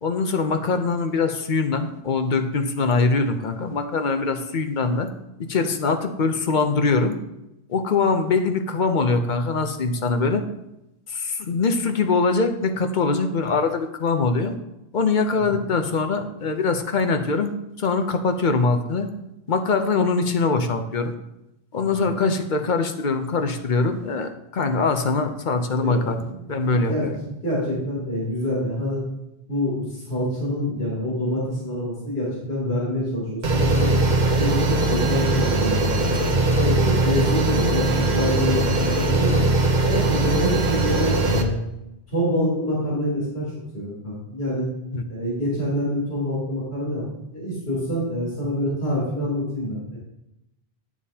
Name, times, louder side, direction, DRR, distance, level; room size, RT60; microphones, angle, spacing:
voice 1, 0.0-5.1 5.4-7.2 7.7-10.4 11.1-14.5 14.9-17.5 17.8-19.1 19.5-21.1 21.7-27.1 44.9-45.1, left 4 dB, 50° left, 7 dB, 0.8 m, -23 dB
voice 2, 26.7-29.0 29.5-34.0 34.3-35.9 36.5-39.5 39.9-41.6 42.1-44.7 45.1-47.0 47.3-50.0, left 1 dB, 85° left, -7 dB, 3.4 m, -26 dB
sound 1, 33.4-41.4, right 2 dB, 50° right, 0.9 m, -20 dB
10.0 x 7.2 x 2.8 m, 0.89 s
omnidirectional pair, 1.0 m